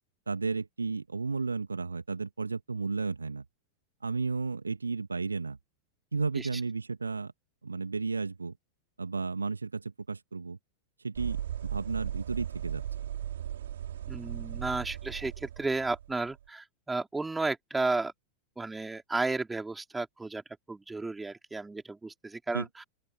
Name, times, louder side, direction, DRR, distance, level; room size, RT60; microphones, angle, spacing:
voice 1, 0.3-3.4 4.0-5.6 6.1-7.3 7.6-8.5 9.0-10.6 11.0-11.4 11.7-12.8 22.5-22.7, right 4 dB, 80° right, 2.3 m, -33 dB
sound 1, 11.1-16.4, right 11 dB, 60° right, 3.2 m, -37 dB
voice 2, 14.1-18.1 18.6-22.8, right 3 dB, 10° right, 4.4 m, -33 dB
open air
figure-of-eight pair, 90°, 0 cm